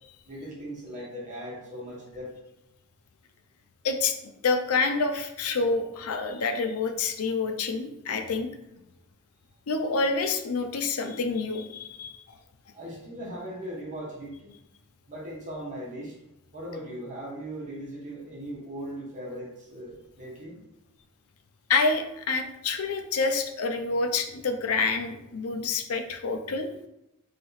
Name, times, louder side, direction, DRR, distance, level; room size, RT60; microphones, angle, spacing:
voice 1, 0.3-2.3 12.7-14.5 15.1-16.1 16.5-20.6, equal, 35° right, -6 dB, 1.1 m, -38 dB
voice 2, 4.4-8.5 9.7-12.2 21.7-26.7, left 4 dB, 85° left, 6 dB, 0.5 m, -27 dB
3.3 x 2.8 x 3.9 m, 0.87 s
head